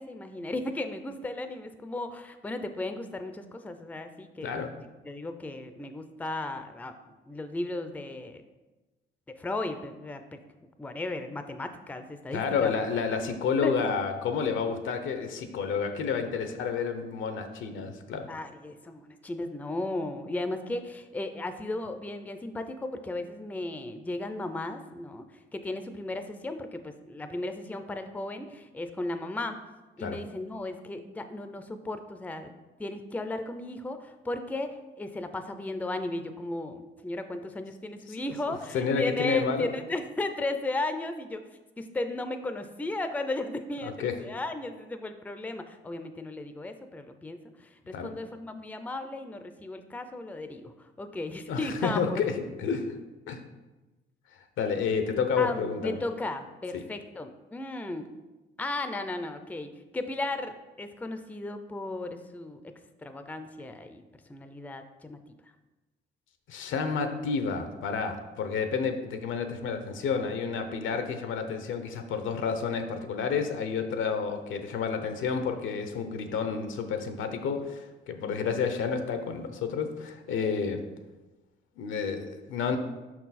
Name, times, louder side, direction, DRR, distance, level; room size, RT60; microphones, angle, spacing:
voice 1, 0.0-4.7 5.0-8.4 9.3-10.4 10.8-12.7 13.6-13.7 18.3-25.2 25.5-29.6 30.0-32.5 32.8-34.7 35.0-41.4 41.8-52.2 55.4-58.0 58.6-62.6 63.0-64.0 64.3-65.2 78.2-78.6, left 2 dB, 10° left, 8 dB, 0.4 m, -35 dB
voice 2, 12.3-18.3 30.0-30.2 38.1-38.3 38.7-39.7 43.8-44.2 47.9-48.1 51.5-52.9 53.3-53.4 54.6-56.0 56.7-56.8 66.5-80.8 81.8-82.8, left 5 dB, 80° left, 7 dB, 0.7 m, -30 dB
5.6 x 4.6 x 4.1 m, 1.1 s
cardioid pair, 90°, 20 cm